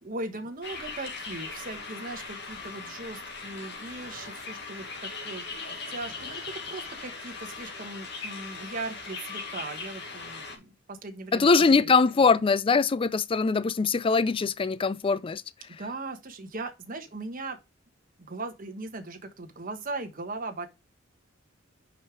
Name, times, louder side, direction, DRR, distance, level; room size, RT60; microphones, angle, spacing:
voice 1, 0.0-6.4 6.7-11.9 12.2-12.3 15.8-17.6 18.2-20.7, right 2 dB, 45° right, 1.2 m, -39 dB
sound 1, 0.6-10.6, left 4 dB, 60° left, 2.0 m, -39 dB
voice 2, 11.3-15.4, left 4 dB, 25° left, 0.4 m, -22 dB
5.4 x 5.3 x 4.5 m
head